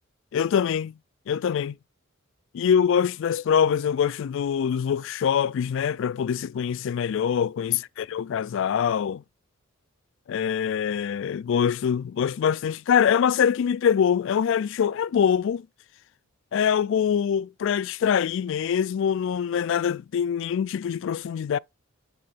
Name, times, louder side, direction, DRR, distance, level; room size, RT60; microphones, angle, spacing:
voice 1, 0.3-1.0 1.3-1.8 2.5-9.2 10.3-15.7 16.5-21.6, left 8 dB, 60° left, 0.3 m, -24 dB
9.6 x 3.6 x 4.0 m
head